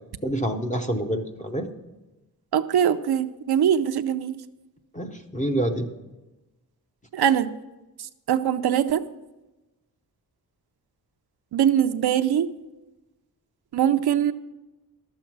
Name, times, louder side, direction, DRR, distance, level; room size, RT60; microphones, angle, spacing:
voice 1, 0.2-1.7 4.9-5.9, right 1 dB, 20° left, 4 dB, 0.7 m, -27 dB
voice 2, 2.5-4.3 7.1-7.5 8.3-9.0 11.5-12.5 13.7-14.3, right 9 dB, 85° right, 8 dB, 0.6 m, -22 dB
12.0 x 7.4 x 6.0 m, 1.0 s
wide cardioid pair, 175°, 37 cm